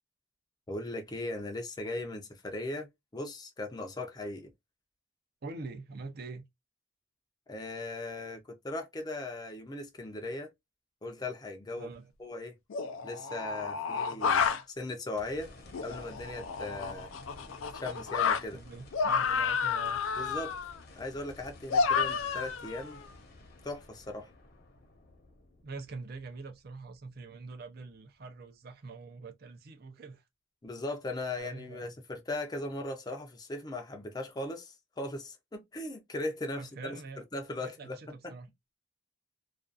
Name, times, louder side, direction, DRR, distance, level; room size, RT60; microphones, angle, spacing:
voice 1, 0.7-4.5 7.5-10.5 11.0-11.9 12.2-12.6 13.0-14.4 14.8-15.5 15.8-17.1 17.7-18.6 20.2-20.5 20.9-23.0 23.6-24.3 30.6-37.0 37.3-38.0, left 2 dB, 20° left, 0.5 m, -38 dB
voice 2, 5.4-6.4 11.8-12.1 18.5-20.0 25.6-30.2 31.3-32.0 36.6-37.2 37.6-38.5, right 4 dB, 50° right, 0.5 m, -44 dB
sound 1, 11.8-11.9 12.7-14.6 15.7-18.4 18.9-20.8 21.7-23.0, left 6 dB, 90° left, 0.4 m, -30 dB
sound 2, 15.2-27.5 28.0-28.1 31.4-31.5, left 2 dB, 55° left, 0.8 m, -53 dB
2.4 x 2.3 x 2.4 m
head